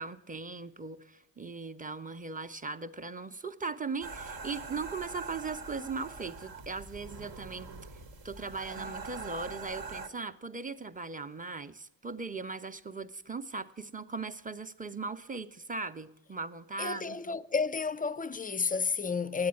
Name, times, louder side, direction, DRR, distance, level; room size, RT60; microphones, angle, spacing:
voice 1, 0.0-7.7 8.2-17.4, right 4 dB, 20° right, 0.7 m, -39 dB
sound 1, 4.0-10.1, right 4 dB, 65° right, 1.3 m, -43 dB
voice 2, 16.8-19.5, left 5 dB, 20° left, 0.3 m, -31 dB
9.6 x 8.5 x 7.6 m
supercardioid pair, 45°, 46 cm